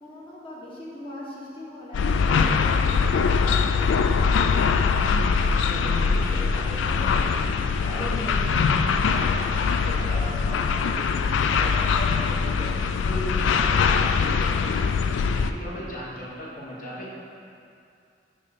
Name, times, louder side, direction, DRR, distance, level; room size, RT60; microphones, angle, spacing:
voice 1, 0.0-4.6 15.8-16.0, left 1 dB, 30° left, -6 dB, 1.3 m, -41 dB
sound 1, 1.9-15.5, left 5 dB, 90° left, 0.3 m, -22 dB
voice 2, 5.5-9.2 9.7-14.8 15.3-17.2, equal, 45° left, -5 dB, 1.3 m, -37 dB
6.4 x 5.4 x 4.1 m, 2.5 s
head